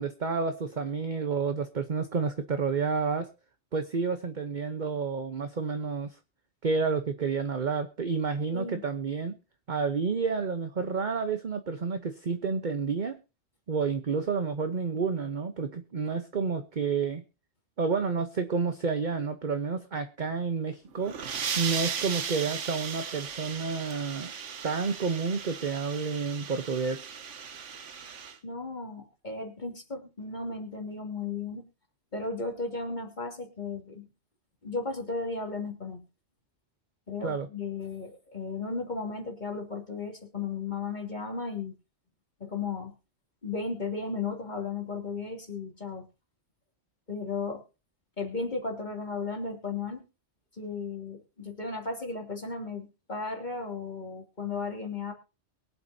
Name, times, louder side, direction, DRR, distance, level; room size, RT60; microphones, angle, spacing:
voice 1, 0.0-3.3 3.7-6.2 6.6-9.4 9.7-13.2 13.7-17.2 17.8-21.1 21.6-24.3 24.6-27.0 37.2-37.5, right 5 dB, 40° right, 8 dB, 1.0 m, -30 dB
voice 2, 8.5-8.8 28.4-31.6 32.1-34.1 34.6-36.0 37.1-41.7 42.4-42.9 43.4-46.1 47.1-47.6 48.2-50.0 50.5-55.1, left 4 dB, 35° left, 2 dB, 2.9 m, -35 dB
sound 1, 20.9-28.4, right 6 dB, 70° right, 1.4 m, -36 dB
23.0 x 8.3 x 2.7 m, 0.32 s
omnidirectional pair, 1.3 m